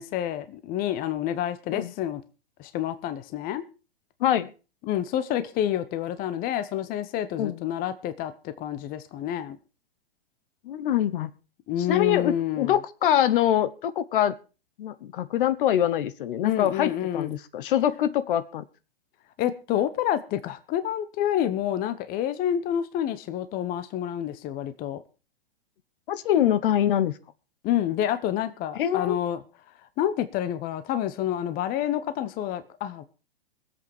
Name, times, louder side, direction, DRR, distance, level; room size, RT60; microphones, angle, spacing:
voice 1, 0.0-2.2 2.6-3.6 4.8-9.6 11.7-12.7 16.4-17.3 19.4-25.0 27.6-29.4 30.0-33.0, left 11 dB, 30° left, 1.1 m, -28 dB
voice 2, 4.2-4.5 7.4-7.5 10.7-11.3 11.9-14.4 14.8-18.6 26.1-27.1 28.8-29.2, left 11 dB, 60° left, 1.2 m, -24 dB
21.5 x 8.1 x 4.5 m
hypercardioid pair, 125°, 31 cm